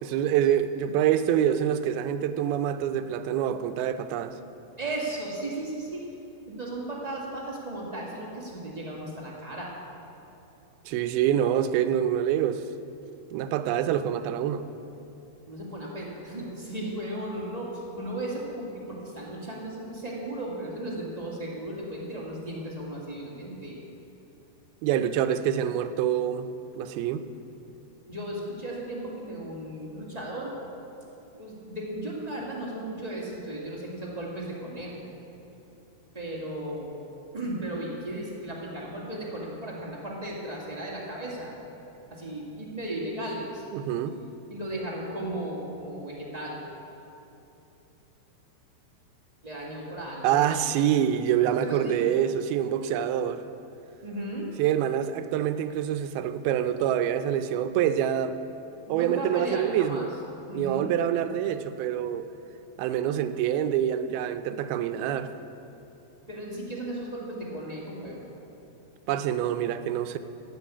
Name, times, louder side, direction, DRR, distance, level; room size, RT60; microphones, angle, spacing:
voice 1, 0.0-4.3 10.9-12.6 13.3-14.6 24.8-26.5 26.8-27.2 43.7-44.2 50.2-53.4 54.6-58.4 58.9-60.1 60.5-62.3 62.8-65.3 69.1-70.2, right 10 dB, 80° right, 10 dB, 2.5 m, -26 dB
voice 2, 4.8-6.0 6.5-9.7 15.5-23.8 28.1-30.5 31.3-35.1 36.1-37.0 37.3-41.5 42.1-43.6 44.5-46.6 49.4-50.8 51.6-52.1 54.0-54.5 58.8-60.1 60.5-60.9 66.3-68.3, right 1 dB, 20° right, -4 dB, 1.2 m, -35 dB
15.5 x 7.7 x 8.5 m, 3.0 s
omnidirectional pair, 4.4 m